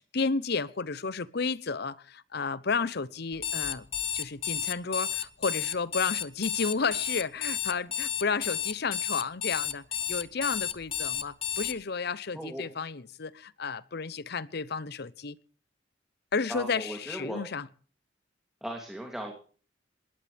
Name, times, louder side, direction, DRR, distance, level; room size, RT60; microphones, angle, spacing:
voice 1, 0.0-3.9 4.1-15.4 16.3-17.7, left 4 dB, 55° left, 0.8 m, -32 dB
Alarm, 3.3-11.7, left 9 dB, 30° left, 0.9 m, -32 dB
voice 2, 12.3-12.7 16.5-17.4 18.6-19.3, right 1 dB, ahead, 2.9 m, -37 dB
20.5 x 20.0 x 3.5 m
head